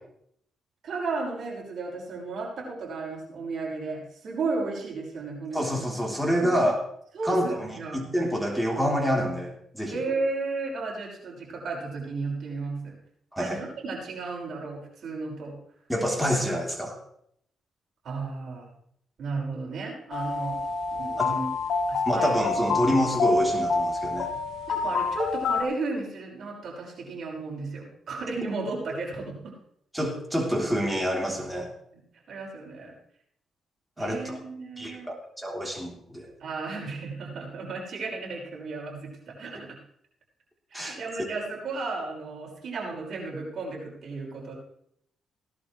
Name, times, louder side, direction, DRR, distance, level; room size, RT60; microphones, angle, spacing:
voice 1, 0.8-5.6 6.2-6.5 7.1-8.0 9.9-13.0 13.4-15.5 18.0-18.7 19.2-20.6 20.9-21.5 21.9-22.3 22.7-22.9 24.7-29.5 32.3-32.9 34.0-35.1 36.4-39.8 40.7-44.5, right 3 dB, 60° right, -2 dB, 5.7 m, -34 dB
voice 2, 5.5-6.8 7.2-7.7 7.9-10.0 13.3-13.6 15.9-17.0 21.2-21.3 22.0-24.3 29.9-31.7 34.0-34.4 34.8-36.3 40.7-41.0, equal, 5° right, -1 dB, 3.6 m, -27 dB
sound 1, 20.1-25.6, left 4 dB, 80° left, 2.5 m, -27 dB
17.5 x 11.5 x 3.3 m, 0.70 s
cardioid pair, 90°, 0 cm